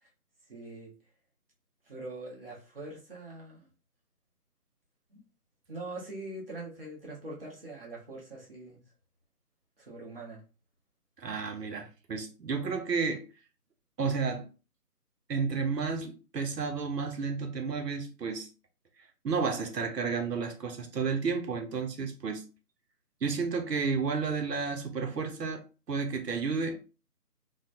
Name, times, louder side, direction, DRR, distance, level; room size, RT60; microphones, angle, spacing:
voice 1, 0.5-0.9 1.9-3.7 5.1-5.2 5.7-8.8 9.8-10.4, right 2 dB, 35° right, 1.0 m, -43 dB
voice 2, 11.2-13.2 14.0-14.5 15.3-18.5 19.2-22.4 23.2-25.6 25.9-26.8, right 5 dB, 90° right, 0.7 m, -31 dB
3.1 x 2.1 x 2.5 m
figure-of-eight pair, 160°, 48 cm